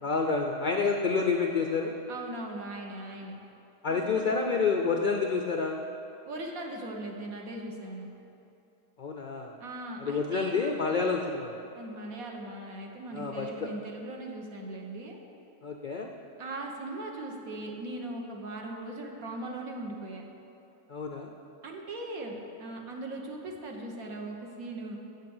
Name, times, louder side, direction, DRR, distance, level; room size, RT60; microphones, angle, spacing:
voice 1, 0.0-1.9 3.8-5.8 9.0-9.5 10.0-11.6 13.1-13.7 15.6-16.1 20.9-21.3, left 4 dB, 80° left, 2 dB, 0.4 m, -28 dB
voice 2, 2.1-3.4 3.9-4.5 6.3-8.1 9.6-10.6 11.7-15.2 16.4-20.2 21.6-25.0, right 2 dB, 65° right, 1 dB, 1.5 m, -39 dB
8.2 x 7.7 x 7.1 m, 2.8 s
omnidirectional pair, 1.6 m